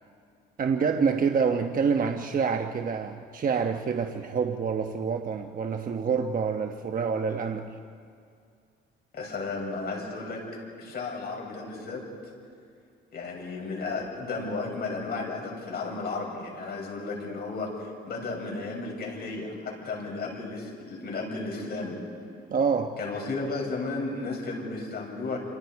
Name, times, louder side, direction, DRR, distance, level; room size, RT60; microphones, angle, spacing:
voice 1, 0.6-7.8 22.5-23.0, right 6 dB, 45° right, 5 dB, 1.1 m, -27 dB
voice 2, 9.1-10.4 10.8-12.3 13.1-22.1 23.0-25.4, left 3 dB, 55° left, -1 dB, 7.1 m, -34 dB
29.0 x 26.5 x 4.8 m, 2.3 s
cardioid pair, 90°, 20 cm